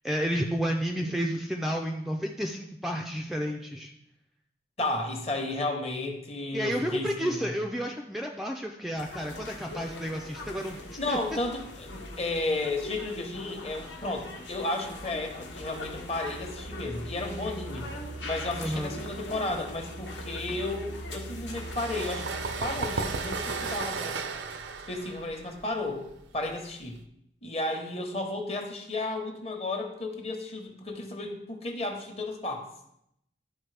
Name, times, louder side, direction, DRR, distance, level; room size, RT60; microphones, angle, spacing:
voice 1, 0.0-3.9 6.5-11.4 18.6-18.9, equal, ahead, 1 dB, 0.4 m, -31 dB
voice 2, 4.8-7.5 11.0-17.9 18.2-22.2 22.6-24.2 24.9-26.0 26.3-27.0 27.4-32.7, left 2 dB, 35° left, 3 dB, 1.0 m, -33 dB
sound 1, 9.0-23.8, equal, 85° left, 1.3 m, -40 dB
sound 2, 21.5-27.0, right 4 dB, 90° right, 0.6 m, -35 dB
11.5 x 4.2 x 3.3 m, 0.78 s
head